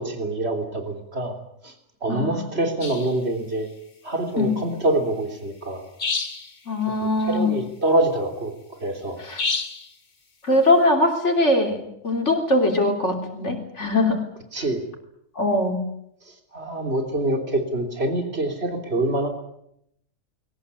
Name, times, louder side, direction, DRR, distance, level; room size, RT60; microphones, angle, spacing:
voice 1, 0.0-1.3 1.6-1.7 2.0-3.7 4.0-5.8 7.0-8.5 8.8-9.2 14.5-14.8 16.5-19.3, right 2 dB, 55° right, 5 dB, 3.6 m, -25 dB
voice 2, 2.1-2.5 4.4-4.6 6.7-7.6 9.2-9.4 10.4-14.2 15.4-15.8, left 1 dB, 70° left, 3 dB, 3.6 m, -21 dB
sound 1, 2.8-3.2 6.0-6.6 9.4-9.9, left 4 dB, 40° left, 1.6 m, -28 dB
22.0 x 18.5 x 9.6 m, 0.75 s
omnidirectional pair, 1.3 m